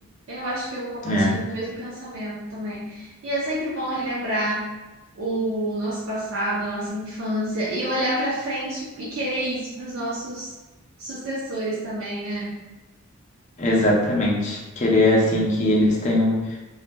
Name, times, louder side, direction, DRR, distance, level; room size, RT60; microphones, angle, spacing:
voice 1, 0.3-4.7 5.2-10.5 11.0-12.6, right 1 dB, 80° right, -8 dB, 0.6 m, -28 dB
voice 2, 1.0-1.4 13.6-16.6, left 1 dB, 35° left, -3 dB, 0.5 m, -20 dB
2.8 x 2.3 x 2.2 m, 1.1 s
head